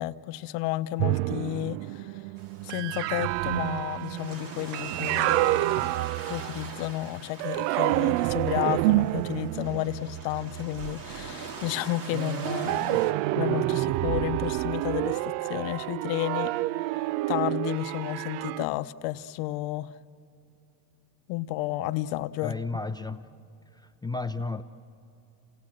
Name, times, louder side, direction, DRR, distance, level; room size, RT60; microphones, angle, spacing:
voice 1, 0.0-2.2 2.6-5.9 6.3-13.0 13.3-16.5 17.0-19.9 21.3-22.6, left 16 dB, 70° left, 12 dB, 0.9 m, -32 dB
sound 1, 1.0-6.9 7.4-11.3 12.1-18.7, right 18 dB, 70° right, 0.5 m, -28 dB
sound 2, 2.4-13.1, right 4 dB, 50° right, 2.4 m, -43 dB
voice 2, 22.4-23.3 23.7-24.6, left 3 dB, 10° left, 8 dB, 0.5 m, -33 dB
28.0 x 18.5 x 7.6 m, 2.7 s
supercardioid pair, 115°, 45 cm